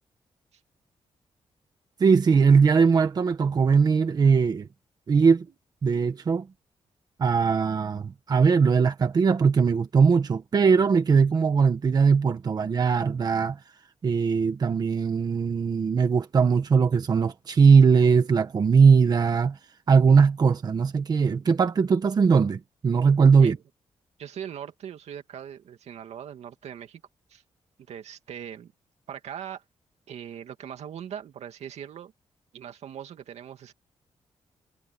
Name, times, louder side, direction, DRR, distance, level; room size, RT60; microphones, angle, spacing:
voice 1, 2.0-4.7 5.1-5.4 5.8-6.5 7.2-13.6 14.0-19.6 19.9-23.6, right 5 dB, 40° right, 1.4 m, -20 dB
voice 2, 24.2-27.0 27.3-27.4 27.9-28.7 29.1-29.6 30.1-32.1 32.5-33.7, right 9 dB, 85° right, 2.4 m, -40 dB
wide cardioid pair, 175°, 11 cm